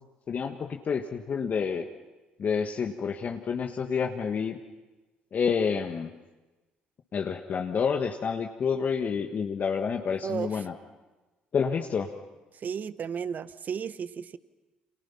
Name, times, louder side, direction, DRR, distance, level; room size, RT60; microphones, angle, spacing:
voice 1, 0.3-1.9 2.4-4.6 5.3-6.1 7.1-10.7 11.5-12.1, left 6 dB, 45° left, 3 dB, 1.5 m, -29 dB
voice 2, 12.6-14.4, right 7 dB, 50° right, 15 dB, 1.1 m, -33 dB
29.5 x 27.0 x 5.8 m, 1.1 s
hypercardioid pair, 50°, 4 cm